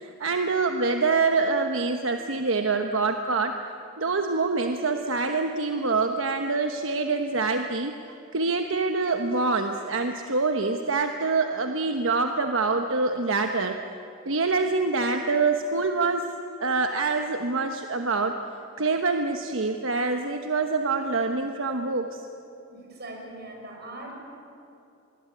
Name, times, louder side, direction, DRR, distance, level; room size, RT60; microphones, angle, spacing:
voice 1, 0.0-3.5 4.0-13.8 14.2-16.3 16.6-18.3 18.8-22.2, right 3 dB, 80° right, 5 dB, 1.2 m, -25 dB
voice 2, 22.7-24.1, right 2 dB, 55° right, 1 dB, 6.4 m, -41 dB
25.5 x 21.5 x 8.6 m, 2.8 s
head